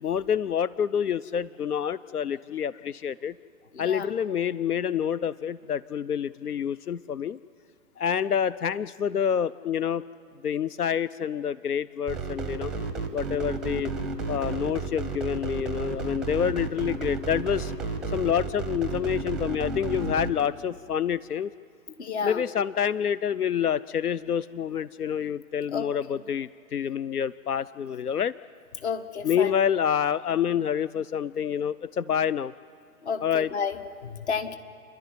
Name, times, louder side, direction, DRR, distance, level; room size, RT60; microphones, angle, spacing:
voice 1, 0.0-3.3 3.8-7.4 8.0-10.0 10.4-12.7 13.1-13.9 14.3-17.7 18.1-21.5 22.2-28.3 29.2-32.5 33.2-33.5, left 8 dB, 90° left, 17 dB, 0.5 m, -27 dB
sound 1, 12.1-20.4, right 4 dB, ahead, 0.7 m, -32 dB
voice 2, 22.0-22.4 25.7-25.9 28.8-29.5 33.1-33.8 34.0-34.6, left 6 dB, 50° left, 10 dB, 1.7 m, -31 dB
29.5 x 12.0 x 9.7 m, 2.4 s
figure-of-eight pair, 125°, 44 cm